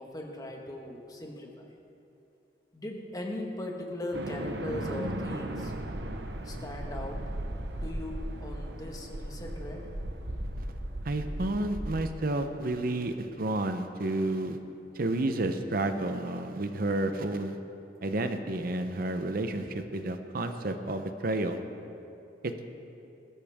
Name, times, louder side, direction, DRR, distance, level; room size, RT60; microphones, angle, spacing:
voice 1, 0.0-1.7 2.7-5.7 6.4-7.2 7.8-9.9 19.6-19.7, left 1 dB, 20° left, 1 dB, 1.5 m, -39 dB
sound 1, 4.1-12.6, right 1 dB, 75° right, 1.0 m, -36 dB
voice 2, 11.0-14.6 14.9-17.6 18.0-19.6 19.9-21.6 22.4-22.7, right 2 dB, 55° right, 8 dB, 0.7 m, -30 dB
19.0 x 13.5 x 3.6 m, 2.7 s
head